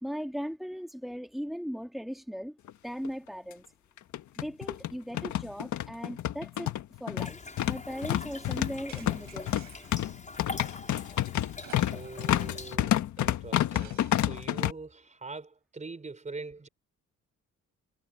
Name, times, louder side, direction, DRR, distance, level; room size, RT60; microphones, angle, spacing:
voice 1, 0.0-2.6 2.8-3.6 4.4-6.7 7.0-7.4 7.6-9.5, equal, ahead, 2.8 m, -38 dB
sound 1, 2.7-2.8 3.0-3.1 4.0-14.7, left 12 dB, 70° left, 1.5 m, -29 dB
sound 2, 7.2-12.8, left 3 dB, 25° left, 5.8 m, -44 dB
sound 3, 8.9-10.1 11.6-12.3 12.7-12.8 13.7-14.6, right 11 dB, 75° right, 5.5 m, -53 dB
voice 2, 11.7-16.7, right 3 dB, 25° right, 4.4 m, -43 dB
cardioid pair, 90°, 30 cm